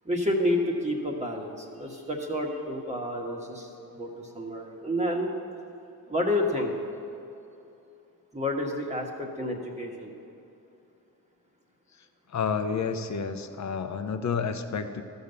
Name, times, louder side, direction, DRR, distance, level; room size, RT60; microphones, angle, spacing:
voice 1, 0.0-5.3 6.1-6.7 8.3-10.1, left 1 dB, 15° right, -1 dB, 1.4 m, -29 dB
voice 2, 12.3-15.0, left 6 dB, 45° left, 8 dB, 0.9 m, -30 dB
13.5 x 5.5 x 6.8 m, 2.8 s
cardioid pair, 65°, 38 cm